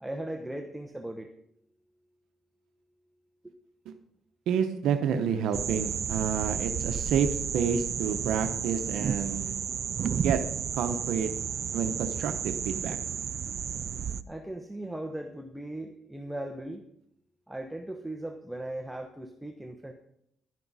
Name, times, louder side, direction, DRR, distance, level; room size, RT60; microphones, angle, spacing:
voice 1, 0.0-1.3 14.3-16.8 17.5-19.9, right 1 dB, 5° right, 4 dB, 1.0 m, -38 dB
voice 2, 4.5-7.3 7.5-9.5 10.1-10.4 10.8-11.3 11.7-13.0, right 7 dB, 80° right, 7 dB, 0.8 m, -29 dB
sound 1, 5.5-14.2, right 8 dB, 60° right, 0.5 m, -32 dB
11.5 x 11.0 x 4.1 m, 0.75 s
cardioid pair, 90°, 0 cm